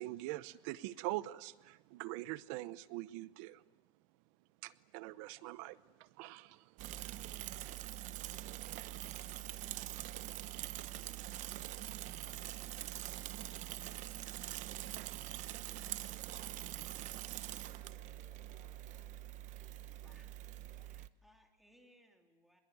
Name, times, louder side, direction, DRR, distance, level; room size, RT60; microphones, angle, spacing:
voice 1, 0.0-3.6 4.6-6.9, right 17 dB, 85° right, 0.8 m, -43 dB
Bicycle / Mechanisms, 6.8-21.1, right 14 dB, 50° right, 0.9 m, -44 dB
voice 2, 16.4-19.1 19.6-20.2 20.4-20.9, left 4 dB, 20° left, 4.3 m, -70 dB
voice 3, 20.0-20.3 20.8-22.6, equal, ahead, 3.0 m, -67 dB
25.0 x 21.5 x 9.4 m
cardioid pair, 160°, 16 cm